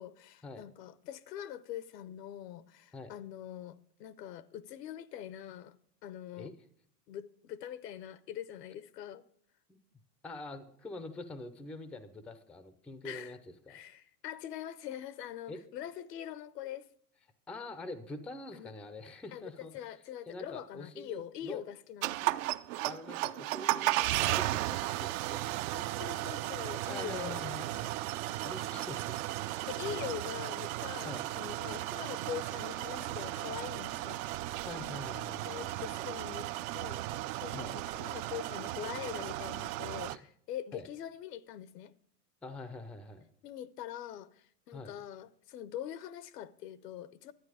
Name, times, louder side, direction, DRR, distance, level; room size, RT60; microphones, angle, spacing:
voice 1, 0.0-5.7 6.0-6.5 7.1-9.2 13.0-13.4 13.7-16.9 18.5-18.7 19.3-22.4 25.7-27.4 29.7-34.2 35.4-36.5 36.7-41.9 43.4-47.3, left 11 dB, 80° left, 0.8 m, -43 dB
voice 2, 10.2-13.8 15.5-15.6 17.5-19.9 20.3-21.6 22.8-25.9 26.8-27.9 28.4-29.4 31.0-31.3 34.6-35.8 37.5-37.7 40.1-40.2 40.7-40.9 42.4-43.2 44.7-44.9, left 2 dB, 5° left, 0.4 m, -45 dB
sound 1, 22.0-40.2, right 16 dB, 55° right, 0.5 m, -35 dB
11.5 x 8.8 x 4.8 m
hypercardioid pair, 120°, 48 cm